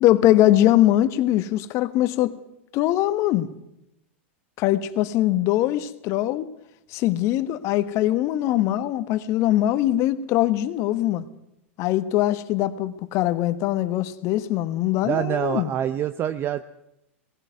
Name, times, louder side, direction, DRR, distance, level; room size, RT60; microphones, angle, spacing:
voice 1, 0.0-2.4 2.7-3.5 4.6-6.5 6.9-11.2 11.8-15.7, left 14 dB, 45° left, 1.2 m, -22 dB
voice 2, 15.0-16.7, right 10 dB, 30° right, 0.7 m, -26 dB
19.0 x 16.0 x 9.3 m
hypercardioid pair, 100°, 7 cm